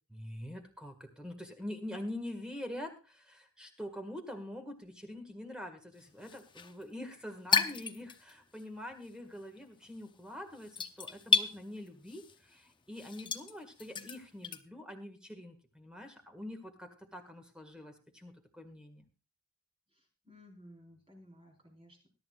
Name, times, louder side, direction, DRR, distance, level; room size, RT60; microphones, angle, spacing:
voice 1, 0.1-19.1, left 1 dB, 5° right, 5 dB, 1.8 m, -45 dB
sound 1, 6.0-8.6 8.9-14.6, left 5 dB, 20° left, 0.8 m, -34 dB
voice 2, 19.9-22.1, equal, 25° right, 0 dB, 4.4 m, -57 dB
21.0 x 11.5 x 2.4 m, 0.33 s
head